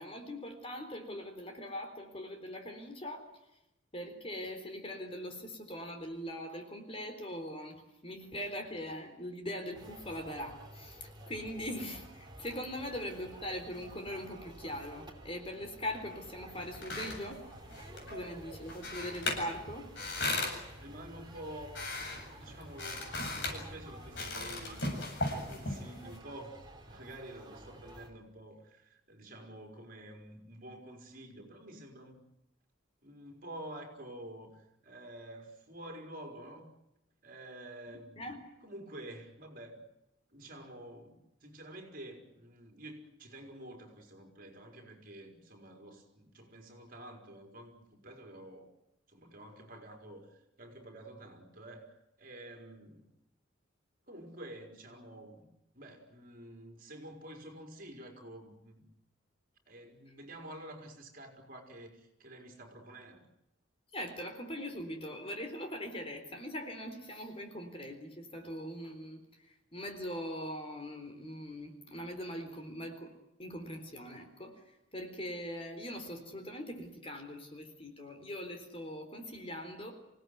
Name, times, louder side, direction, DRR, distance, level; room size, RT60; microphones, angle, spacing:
voice 1, 0.0-3.3 3.9-17.4 18.1-19.9 38.2-38.4 63.9-73.1 73.4-79.9, equal, 30° left, 5 dB, 3.9 m, -41 dB
sound 1, 9.7-28.1, right 1 dB, 20° right, 3.4 m, -52 dB
sound 2, 16.5-26.2, left 2 dB, 65° left, 8.0 m, -39 dB
voice 2, 20.4-21.8 22.4-24.9 25.5-32.2 33.0-36.7 37.2-38.2 38.6-39.8 40.3-48.7 49.1-53.1 54.1-55.5 55.7-58.8 59.7-63.3, right 1 dB, 45° right, 3 dB, 4.8 m, -49 dB
27.5 x 17.5 x 9.5 m, 0.89 s
head